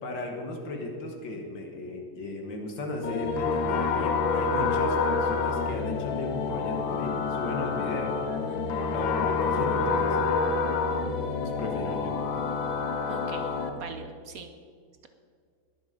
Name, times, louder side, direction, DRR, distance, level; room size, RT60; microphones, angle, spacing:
voice 1, 0.0-8.2 8.9-10.2 11.4-12.1, left 2 dB, 75° left, 2 dB, 2.2 m, -35 dB
sound 1, 3.0-13.7, left 4 dB, 90° left, 1.7 m, -28 dB
voice 2, 8.5-8.9 13.1-13.5 13.7-14.5, right 5 dB, 60° right, 7 dB, 1.0 m, -42 dB
20.5 x 7.2 x 5.2 m, 2.2 s
omnidirectional pair, 2.1 m